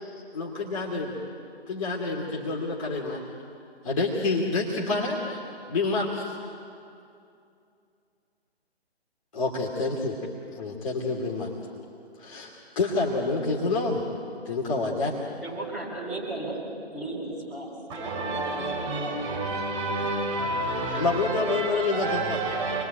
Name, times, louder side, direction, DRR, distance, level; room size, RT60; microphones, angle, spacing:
voice 1, 0.0-1.1 1.7-3.2 3.8-5.4 5.7-6.1 9.3-10.2 10.5-11.5 12.2-14.0 14.4-15.1 21.0-22.4, left 3 dB, 30° left, 2.9 m, -28 dB
voice 2, 15.4-16.6 16.9-19.2 19.7-20.0, right 2 dB, ahead, 5.7 m, -36 dB
voice 3, 17.9-22.8, right 2 dB, 25° right, 6.5 m, -29 dB
28.0 x 22.0 x 9.3 m
figure-of-eight pair, 140°, 33 cm